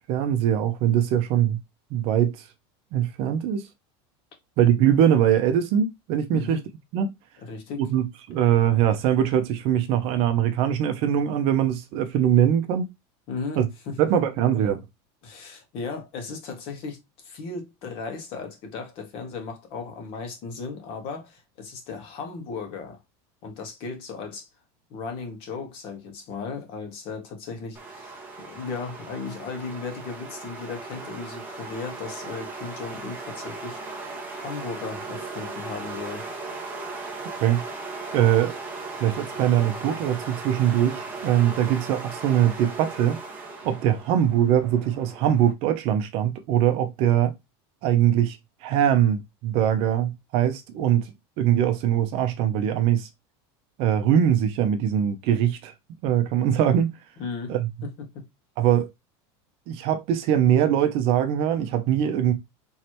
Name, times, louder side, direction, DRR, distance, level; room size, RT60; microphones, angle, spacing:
voice 1, 0.1-1.6 1.9-2.3 2.9-3.7 4.6-6.6 6.9-7.1 7.8-12.9 13.6-13.7 14.0-14.8 37.4-37.6 38.1-38.6 39.0-43.2 43.6-47.3 47.8-48.4 48.6-51.1 51.4-53.1 53.8-55.7 56.0-56.9 57.5-57.7 58.6-58.9 59.7-62.3, right 10 dB, 40° right, 0.7 m, -22 dB
voice 2, 6.3-6.6 7.4-7.9 13.3-13.6 13.9-14.0 15.2-23.0 23.4-24.5 24.9-33.8 34.3-36.3 57.2-57.5 57.8-58.2, left 4 dB, 40° left, 1.5 m, -36 dB
sound 1, 27.7-45.5, right 3 dB, 15° right, 1.1 m, -37 dB
4.6 x 3.2 x 2.9 m
supercardioid pair, 170°, 14 cm